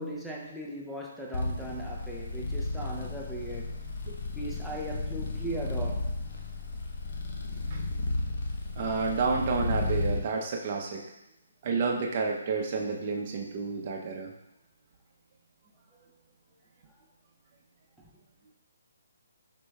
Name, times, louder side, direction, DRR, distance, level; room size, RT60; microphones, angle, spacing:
voice 1, 0.0-3.8 4.4-6.1, right 1 dB, ahead, -4 dB, 0.5 m, -38 dB
sound 1, 1.3-10.2, left 2 dB, 55° left, 0.8 m, -33 dB
voice 2, 8.8-11.0 11.6-14.3, right 4 dB, 40° right, 1 dB, 0.7 m, -30 dB
4.9 x 4.4 x 2.3 m, 0.91 s
hypercardioid pair, 155°, 0 cm